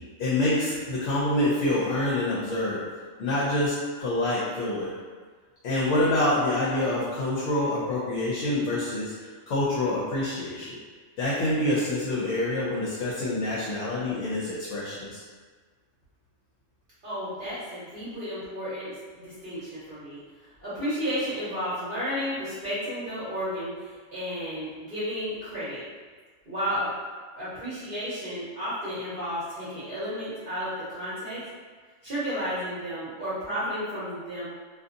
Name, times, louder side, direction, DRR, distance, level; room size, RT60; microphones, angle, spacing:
voice 1, 0.2-2.8 3.2-4.9 5.6-9.1 9.5-10.8 11.2-15.2, left 1 dB, 70° left, -6 dB, 0.9 m, -26 dB
voice 2, 17.0-25.8 26.5-26.9 27.3-31.4 32.0-34.5, equal, 45° right, -11 dB, 0.9 m, -32 dB
2.6 x 2.5 x 2.5 m, 1.5 s
omnidirectional pair, 1.4 m